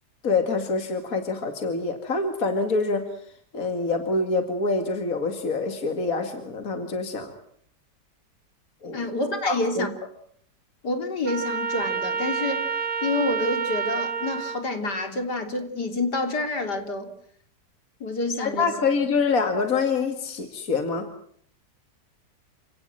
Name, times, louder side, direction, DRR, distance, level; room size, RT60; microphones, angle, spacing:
voice 1, 0.2-3.1 3.5-7.3 8.8-9.1 9.4-9.9 18.4-21.1, left 4 dB, 55° left, 6 dB, 2.7 m, -26 dB
voice 2, 8.9-9.9 10.8-12.7 13.0-17.1 18.0-18.7, left 2 dB, 75° left, 6 dB, 3.9 m, -28 dB
Trumpet, 11.3-14.6, right 6 dB, 65° right, 2.7 m, -28 dB
29.0 x 17.5 x 9.1 m, 0.65 s
omnidirectional pair, 1.8 m